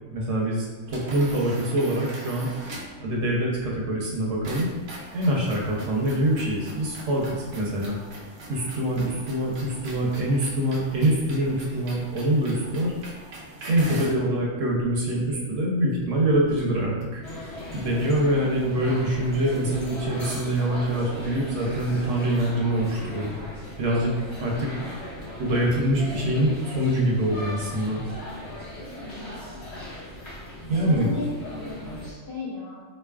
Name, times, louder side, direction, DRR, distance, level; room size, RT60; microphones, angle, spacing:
voice 1, 0.1-2.5 3.0-4.7 5.1-8.0 8.5-12.9 13.7-17.2 17.7-23.3 23.8-24.1 24.4-24.7 25.4-28.0 30.7-31.1, right 1 dB, 70° right, -2 dB, 1.1 m, -24 dB
sound 1, 0.9-3.0 4.4-14.2, right 2 dB, 90° right, 1.2 m, -42 dB
voice 2, 5.6-5.9 29.0-29.4 30.8-32.8, left 4 dB, 50° left, -7 dB, 1.2 m, -36 dB
sound 2, 17.2-32.1, left 1 dB, 30° left, 0.9 m, -38 dB
3.8 x 3.1 x 2.3 m, 1.3 s
omnidirectional pair, 1.4 m